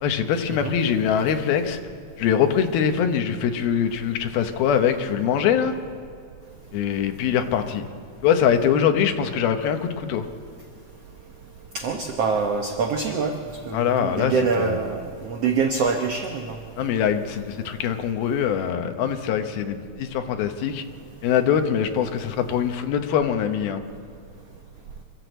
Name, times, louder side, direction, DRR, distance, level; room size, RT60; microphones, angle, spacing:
voice 1, 0.0-1.8 2.2-5.7 6.7-7.8 8.2-10.3 13.7-14.8 16.8-20.8 21.2-23.8, left 8 dB, 85° left, 6 dB, 3.1 m, -23 dB
voice 2, 11.7-13.4 13.7-16.6, right 5 dB, 65° right, 4 dB, 1.7 m, -25 dB
26.0 x 14.0 x 8.1 m, 2.3 s
omnidirectional pair, 4.2 m